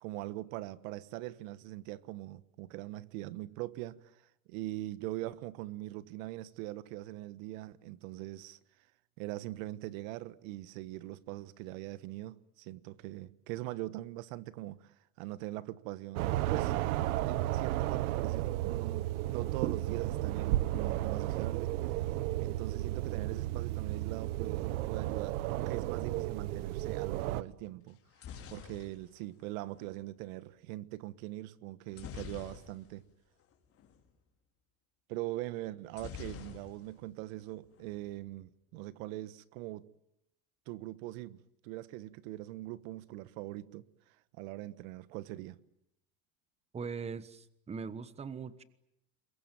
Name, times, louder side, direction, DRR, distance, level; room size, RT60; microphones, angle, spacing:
voice 1, 0.0-4.2 4.5-8.6 9.2-16.7 17.2-21.7 22.4-28.0 28.5-33.0 35.1-39.9 40.7-45.6, right 17 dB, 70° right, 1.4 m, -42 dB
sound 1, 16.2-27.4, right 15 dB, 85° right, 1.2 m, -33 dB
sound 2, 27.9-30.0 31.9-33.1 33.4-33.5 33.8-34.0 35.9-37.1 37.4-38.0, left 7 dB, 35° left, 4.8 m, -47 dB
voice 2, 46.7-48.6, right 5 dB, 15° right, 1.2 m, -41 dB
28.0 x 23.0 x 9.2 m
supercardioid pair, 150°, 42 cm